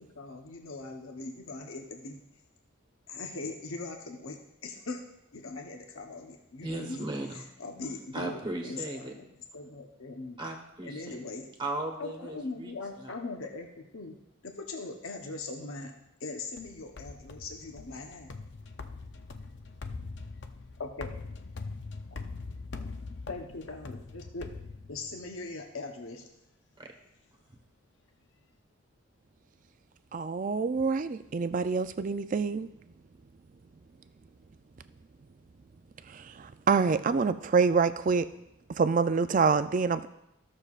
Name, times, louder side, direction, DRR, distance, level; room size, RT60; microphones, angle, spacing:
voice 1, 0.0-2.2 3.1-5.0 5.3-7.1 7.6-9.3 9.5-10.4 10.8-11.5 12.0-14.2 14.4-15.9 16.2-18.3 20.8-21.1 23.3-24.5 24.9-26.3, left 3 dB, 80° left, 2 dB, 0.9 m, -40 dB
voice 2, 6.6-7.4 8.1-9.1 10.4-11.2 11.6-12.7 13.0-13.1 26.8-26.9, right 2 dB, 25° right, 1 dB, 1.2 m, -36 dB
sound 1, 16.6-25.3, left 3 dB, 55° left, 0.5 m, -42 dB
voice 3, 30.1-32.7 36.1-38.3 38.7-40.1, right 5 dB, 40° right, 12 dB, 0.3 m, -26 dB
15.5 x 6.5 x 2.4 m, 0.85 s
head